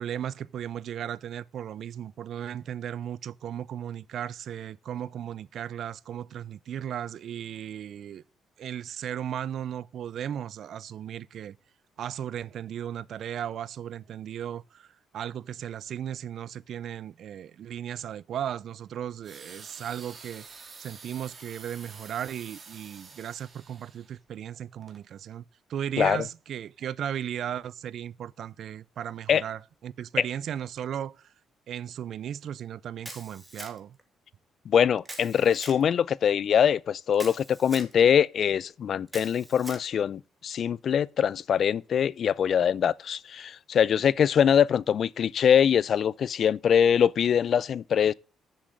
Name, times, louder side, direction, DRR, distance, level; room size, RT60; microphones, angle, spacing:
voice 1, 0.0-8.2 8.6-11.6 12.0-14.9 15.1-20.5 20.8-25.4 25.7-31.3 31.7-34.0, right 9 dB, 65° right, 0.5 m, -36 dB
sound 1, 19.2-24.2 24.8-25.0, right 4 dB, 40° right, 2.3 m, -48 dB
Camera, 33.1-34.0 35.1-35.8 37.1-37.9 39.1-39.9, right 1 dB, 10° right, 2.4 m, -43 dB
voice 2, 34.7-48.1, left 8 dB, 60° left, 0.4 m, -23 dB
7.4 x 7.3 x 7.8 m
cardioid pair, 90°, 0 cm